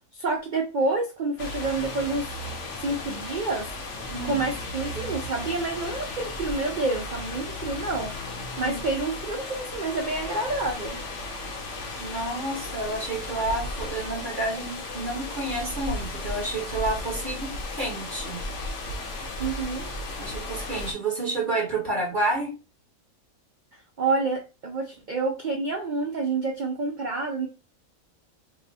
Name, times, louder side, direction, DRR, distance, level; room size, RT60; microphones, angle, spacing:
voice 1, 0.1-2.5 2.8-3.7 4.2-8.1 8.6-11.0 17.3-17.5 19.4-19.9 23.7-27.5, right 3 dB, 85° right, 2 dB, 0.4 m, -28 dB
sound 1, 1.4-20.9, left 2 dB, 60° left, 1.0 m, -35 dB
voice 2, 4.1-4.4 8.6-8.7 12.0-18.4 20.2-22.5, right 2 dB, 40° right, -1 dB, 1.2 m, -30 dB
2.9 x 2.0 x 4.0 m, 0.30 s
omnidirectional pair, 1.5 m